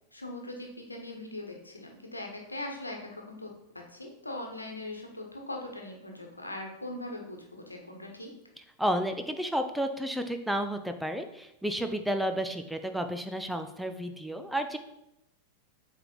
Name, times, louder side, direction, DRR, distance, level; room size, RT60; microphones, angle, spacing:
voice 1, 0.1-3.5 3.9-8.3, left 1 dB, 85° left, 2 dB, 1.2 m, -40 dB
voice 2, 8.8-14.8, equal, ahead, 6 dB, 0.6 m, -31 dB
7.7 x 3.4 x 4.5 m, 0.84 s
figure-of-eight pair, 90°, 0 cm